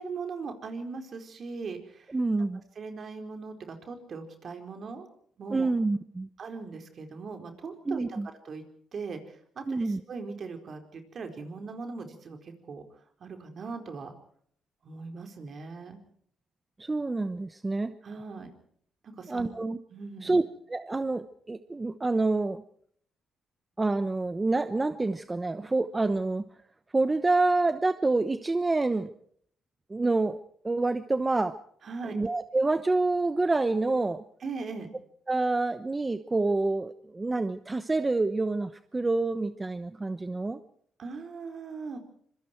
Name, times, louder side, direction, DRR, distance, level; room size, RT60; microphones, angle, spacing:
voice 1, 0.0-2.1 2.8-5.1 5.4-5.7 6.4-8.0 8.4-8.6 8.9-12.9 13.2-14.1 14.8-16.0 18.0-18.5 19.0-19.5 19.9-20.4 31.8-32.2 34.4-34.9 41.0-42.0, right 4 dB, 50° right, 5 dB, 4.5 m, -39 dB
voice 2, 2.1-2.6 5.5-6.3 7.9-8.3 9.7-10.0 16.8-17.9 19.3-19.8 20.2-20.4 20.7-22.6 23.8-26.4 26.9-29.1 29.9-30.4 30.6-31.6 32.1-34.2 35.3-40.6, right 3 dB, 20° right, 11 dB, 1.0 m, -27 dB
25.5 x 24.0 x 4.6 m, 0.63 s
cardioid pair, 90°, 0 cm